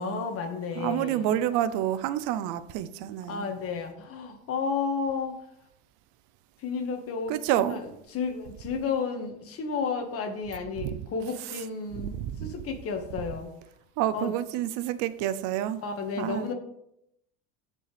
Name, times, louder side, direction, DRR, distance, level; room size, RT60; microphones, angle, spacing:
voice 1, 0.0-1.3 3.3-5.4 6.6-7.8 8.1-13.5 14.1-14.3 15.8-16.5, left 5 dB, 45° left, 5 dB, 1.8 m, -32 dB
voice 2, 0.8-3.5 7.3-7.8 10.8-11.0 12.1-12.5 14.0-15.8 16.2-16.5, right 12 dB, 65° right, 14 dB, 0.7 m, -29 dB
14.5 x 5.3 x 3.4 m, 0.79 s
supercardioid pair, 115°, 33 cm